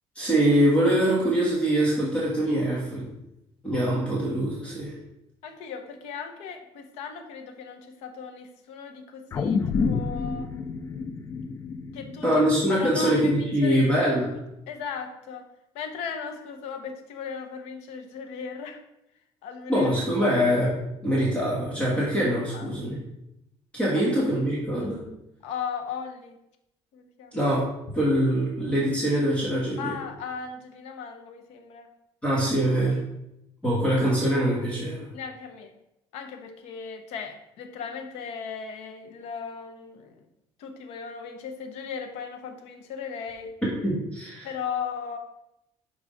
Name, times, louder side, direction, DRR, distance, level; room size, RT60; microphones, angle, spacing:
voice 1, 0.1-3.1 3.6-4.9 12.2-14.3 19.7-20.7 21.0-23.0 23.7-25.0 27.3-27.6 27.9-29.9 32.2-33.0 33.6-35.0 43.8-44.5, right 1 dB, 10° left, -6 dB, 1.6 m, -23 dB
voice 2, 5.4-10.5 11.9-12.3 12.7-13.9 14.7-15.5 15.7-18.8 19.4-19.9 20.2-20.3 22.5-22.7 24.0-24.1 25.4-26.4 26.9-27.4 29.8-31.9 35.1-35.7 36.1-40.2 40.6-43.5 44.4-45.2, left 6 dB, 85° left, 5 dB, 0.9 m, -37 dB
sound 1, 9.3-13.8 14.2-14.3, left 5 dB, 25° left, 0.4 m, -30 dB
6.2 x 4.7 x 3.8 m, 0.85 s
cardioid pair, 155°, 11 cm